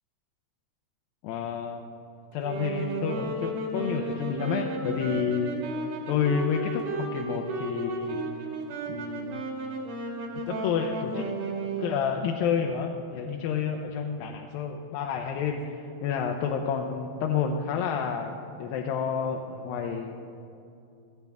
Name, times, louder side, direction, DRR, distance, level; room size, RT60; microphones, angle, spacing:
voice 1, 1.2-1.8 2.3-5.8 6.1-8.2 8.9-9.4 10.5-11.3 11.8-20.1, left 6 dB, 85° left, 2 dB, 2.5 m, -30 dB
Wind instrument woodwind instrument, 2.3-12.0, right 2 dB, 90° right, 3.9 m, -33 dB
18.0 x 13.0 x 3.5 m, 2.6 s
omnidirectional pair, 4.2 m